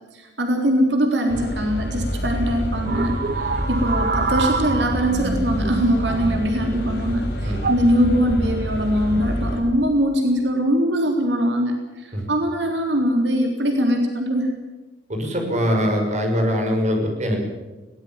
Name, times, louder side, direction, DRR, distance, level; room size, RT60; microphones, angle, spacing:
voice 1, 0.1-14.5, equal, 85° right, 3 dB, 3.6 m, -22 dB
sound 1, 1.3-9.6, equal, 70° left, 5.3 m, -27 dB
sound 2, 2.8-6.7 7.6-7.9 8.9-9.2, right 4 dB, 60° right, 1.5 m, -27 dB
voice 2, 15.1-17.4, equal, 45° right, 3 dB, 6.0 m, -22 dB
21.5 x 18.5 x 7.7 m, 1.2 s
head